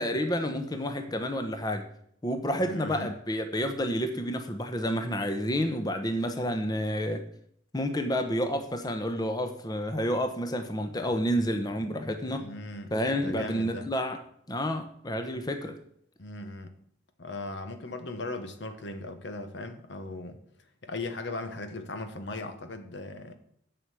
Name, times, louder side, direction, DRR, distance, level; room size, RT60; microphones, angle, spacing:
voice 1, 0.0-1.9 2.2-7.2 7.7-12.5 12.9-14.2 14.5-15.8, equal, 20° left, 6 dB, 0.8 m, -29 dB
voice 2, 2.6-3.1 12.4-12.9 13.2-13.9 16.2-16.7 17.2-20.4 20.8-23.4, left 2 dB, 75° left, 8 dB, 1.2 m, -38 dB
7.9 x 6.2 x 8.1 m, 0.67 s
head